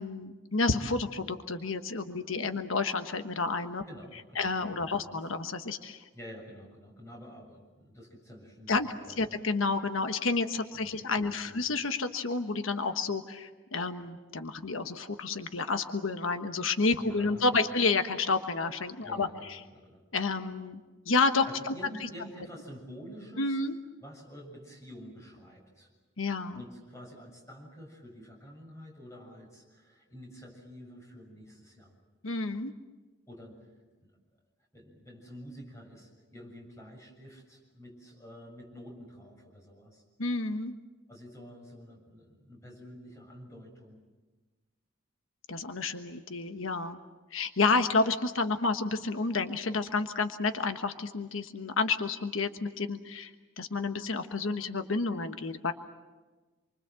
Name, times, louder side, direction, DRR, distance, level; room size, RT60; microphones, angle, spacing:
voice 1, 0.0-3.8 4.4-6.1 8.7-19.6 20.1-20.8 21.0-21.7 23.4-23.8 26.2-26.6 32.2-32.7 40.2-40.7 45.5-47.0 47.3-53.3 53.6-55.7, left 3 dB, 90° left, 8 dB, 1.3 m, -30 dB
voice 2, 3.9-5.2 6.1-9.5 10.7-11.6 17.0-17.8 19.0-20.0 21.5-23.6 24.0-25.9 26.5-31.9 33.3-33.7 34.0-34.4 34.7-40.0 41.1-44.0, equal, 15° left, 0 dB, 7.2 m, -49 dB
28.0 x 24.5 x 7.6 m, 1.3 s
head